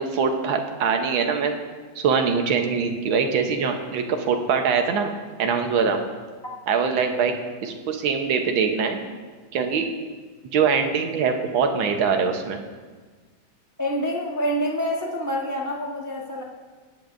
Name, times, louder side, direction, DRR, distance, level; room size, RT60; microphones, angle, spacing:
voice 1, 0.0-1.6 2.0-5.1 5.4-6.0 6.7-9.0 9.5-9.9 10.5-12.6, right 6 dB, 80° right, 5 dB, 1.7 m, -23 dB
voice 2, 13.8-16.4, equal, 15° right, -3 dB, 0.7 m, -27 dB
18.5 x 8.8 x 2.5 m, 1.4 s
omnidirectional pair, 2.2 m